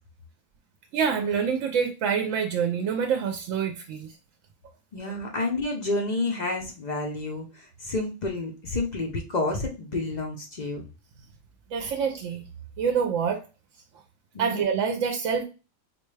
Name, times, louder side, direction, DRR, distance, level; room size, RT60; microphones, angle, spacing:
voice 1, 0.9-4.1 5.1-5.2 11.7-12.4 12.8-13.4 14.4-15.4, right 6 dB, 70° right, 4 dB, 0.9 m, -26 dB
voice 2, 4.9-10.8 14.3-14.6, left 2 dB, 50° left, 1 dB, 0.5 m, -30 dB
4.2 x 2.2 x 3.1 m, 0.31 s
omnidirectional pair, 1.4 m